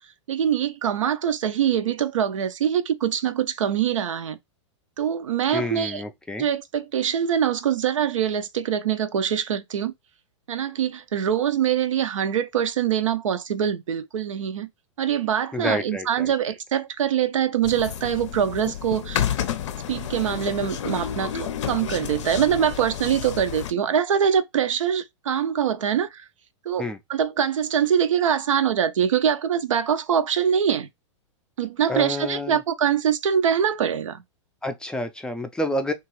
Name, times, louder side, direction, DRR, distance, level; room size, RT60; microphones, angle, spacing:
voice 1, 0.3-4.4 5.0-6.0 6.4-9.9 10.5-14.7 15.0-19.2 19.9-26.2 26.7-30.9 31.6-34.2, right 8 dB, 85° right, 0.5 m, -24 dB
voice 2, 5.5-6.5 15.5-16.3 26.8-27.0 31.9-32.6 34.6-35.9, left 1 dB, 5° left, 0.3 m, -28 dB
sound 1, 17.6-23.7, left 9 dB, 70° left, 0.5 m, -30 dB
2.9 x 2.4 x 3.0 m
hypercardioid pair, 120°, 16 cm